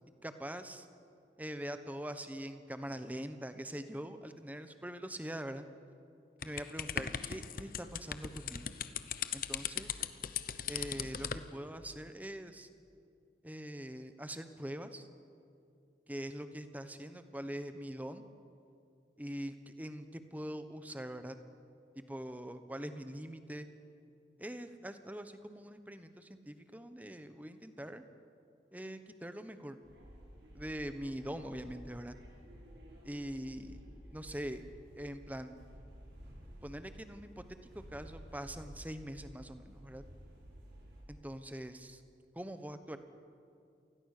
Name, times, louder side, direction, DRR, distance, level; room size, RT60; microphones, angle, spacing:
voice 1, 0.2-0.9 1.4-5.7 6.4-8.7 9.3-10.0 10.7-12.7 13.4-15.1 16.1-18.2 19.2-21.4 21.9-23.7 24.4-28.0 28.7-29.8 30.5-32.1 33.0-33.8 34.1-34.6 35.0-35.6 36.6-40.0 41.1-42.0 42.3-43.0, equal, 10° right, 9 dB, 1.1 m, -43 dB
sound 1, 6.4-11.5, left 8 dB, 55° left, 0.9 m, -38 dB
sound 2, 29.8-41.0, equal, 85° right, 6.5 m, -53 dB
27.5 x 20.0 x 6.7 m, 2.5 s
head